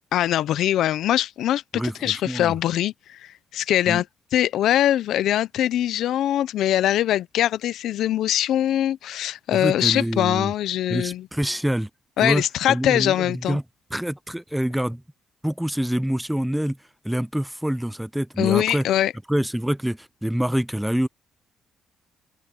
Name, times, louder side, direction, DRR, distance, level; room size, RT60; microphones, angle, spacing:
voice 1, 0.1-1.6 2.0-4.0 4.3-11.3 12.2-13.6 18.4-19.1, left 12 dB, 80° left, 0.6 m, -22 dB
voice 2, 1.7-2.5 3.9-4.0 9.5-10.5 10.9-11.9 12.2-12.4 12.7-13.6 13.9-15.0 15.4-16.8 17.0-18.8 19.3-21.1, equal, 5° right, 0.5 m, -26 dB
open air
cardioid pair, 90°, 0 cm